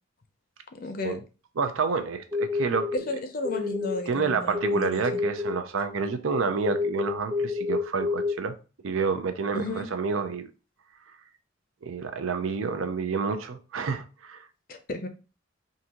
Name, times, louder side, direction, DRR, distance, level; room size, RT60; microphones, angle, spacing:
voice 1, 0.7-1.2 3.1-5.2 9.5-9.9 14.7-15.1, left 2 dB, 45° left, 0.5 m, -34 dB
voice 2, 1.6-2.9 4.1-8.5 8.8-10.5 11.8-14.5, right 5 dB, 80° right, 0.5 m, -29 dB
sound 1, 2.3-3.0 3.4-4.0 4.5-5.5 6.6-8.3, left 4 dB, 15° right, 1.0 m, -28 dB
3.8 x 2.6 x 2.8 m
head